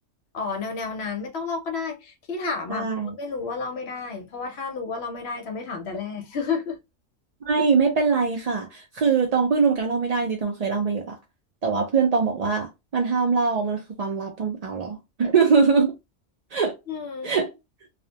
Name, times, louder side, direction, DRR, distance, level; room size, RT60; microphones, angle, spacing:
voice 1, 0.3-6.8 16.9-17.3, left 4 dB, 65° left, 0.9 m, -31 dB
voice 2, 2.7-3.1 7.4-11.1 11.6-15.9 16.5-16.7 17.2-17.5, right 5 dB, 60° right, 0.4 m, -22 dB
2.3 x 2.1 x 2.7 m
omnidirectional pair, 1.3 m